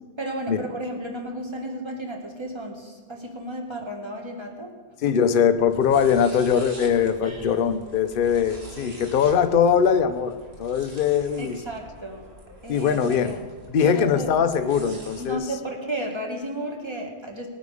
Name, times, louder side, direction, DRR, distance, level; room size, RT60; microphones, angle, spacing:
voice 1, 0.2-4.8 7.2-7.5 11.4-12.2 12.6-13.4 13.8-14.3 15.2-17.5, right 1 dB, 20° right, 1 dB, 1.7 m, -33 dB
voice 2, 5.0-11.6 12.7-13.4 13.7-15.5, left 7 dB, 50° left, 9 dB, 0.7 m, -21 dB
sound 1, 5.6-15.3, right 1 dB, 40° right, 2.2 m, -45 dB
19.5 x 9.4 x 5.0 m, 1.5 s
omnidirectional pair, 1.7 m